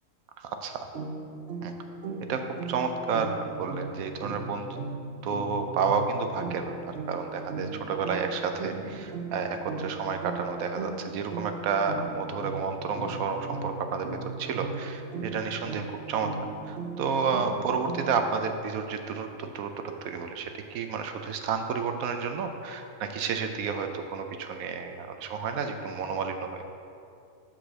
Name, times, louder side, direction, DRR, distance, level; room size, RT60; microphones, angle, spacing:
voice 1, 0.4-0.9 1.6-1.7 2.3-4.8 5.2-14.1 14.4-16.3 16.7-26.6, right 5 dB, 85° right, 6 dB, 1.1 m, -31 dB
sound 1, 0.9-18.4, right 3 dB, 55° right, 0.9 m, -38 dB
6.0 x 4.9 x 6.3 m, 2.6 s
omnidirectional pair, 1.4 m